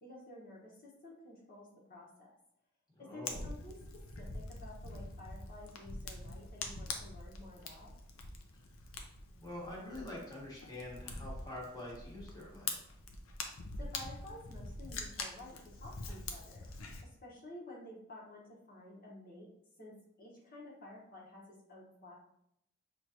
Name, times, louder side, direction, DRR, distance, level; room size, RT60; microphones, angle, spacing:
voice 1, 0.0-2.3 3.0-3.8 4.2-7.9 13.8-16.6 17.0-19.5 19.8-22.2, left 1 dB, 45° left, -4 dB, 1.1 m, -52 dB
voice 2, 2.9-3.4 9.3-12.8, left 1 dB, 20° left, -3 dB, 1.2 m, -46 dB
Fire, 3.3-17.0, left 3 dB, 75° left, 0.6 m, -44 dB
6.0 x 3.1 x 2.8 m, 0.76 s
head